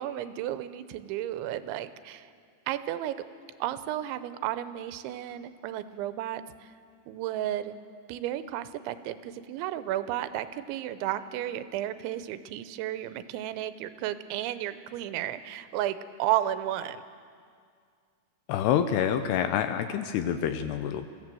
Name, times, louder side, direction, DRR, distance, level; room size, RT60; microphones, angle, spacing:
voice 1, 0.0-2.3 2.7-3.1 3.6-6.7 7.1-7.8 8.1-17.0, right 12 dB, 90° right, 12 dB, 3.1 m, -33 dB
voice 2, 18.5-21.1, left 9 dB, 80° left, 9 dB, 2.5 m, -27 dB
23.0 x 15.5 x 7.6 m, 2.1 s
omnidirectional pair, 5.2 m